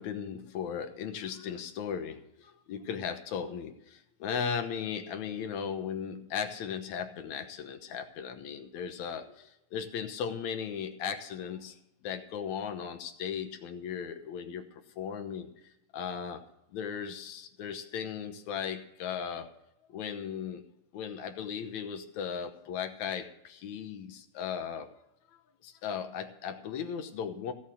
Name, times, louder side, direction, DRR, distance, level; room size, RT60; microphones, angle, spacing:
voice 1, 0.0-11.7 12.0-14.6 15.0-15.5 15.9-16.4 16.7-19.5 19.9-20.6 20.9-24.9 25.6-27.5, left 7 dB, 70° left, 7 dB, 2.3 m, -37 dB
16.0 x 7.2 x 6.4 m, 0.83 s
omnidirectional pair, 3.5 m